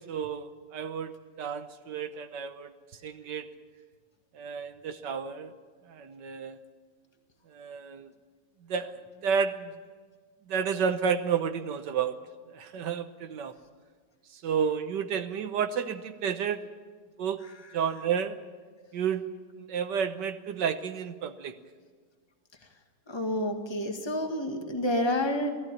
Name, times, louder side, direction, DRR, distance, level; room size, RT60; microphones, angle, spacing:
voice 1, 0.1-2.7 3.0-3.5 4.3-5.5 5.9-6.6 7.5-8.1 8.7-9.7 10.5-12.2 12.5-13.6 14.3-16.6 17.2-17.4 17.7-18.4 18.9-19.3 19.6-21.6, right 7 dB, 75° right, 9 dB, 1.6 m, -31 dB
voice 2, 23.1-25.5, left 1 dB, 15° left, 4 dB, 1.9 m, -29 dB
19.5 x 16.0 x 9.8 m, 1.5 s
omnidirectional pair, 1.9 m